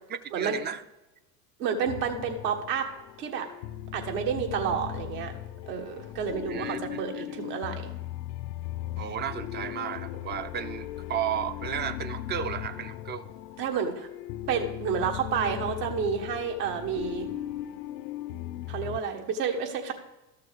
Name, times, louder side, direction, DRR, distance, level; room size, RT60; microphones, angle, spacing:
voice 1, 0.1-0.8 6.5-7.2 9.0-13.3, right 9 dB, 25° right, 13 dB, 0.4 m, -34 dB
voice 2, 1.6-2.9 3.2-3.5 3.9-5.3 5.7-7.9 13.6-14.1 14.5-17.3 18.7-19.9, right 7 dB, 70° right, 3 dB, 1.6 m, -30 dB
sound 1, 1.9-19.0, left 13 dB, 75° left, 0.6 m, -38 dB
13.5 x 6.6 x 3.5 m, 1.0 s
hypercardioid pair, 85°, 49 cm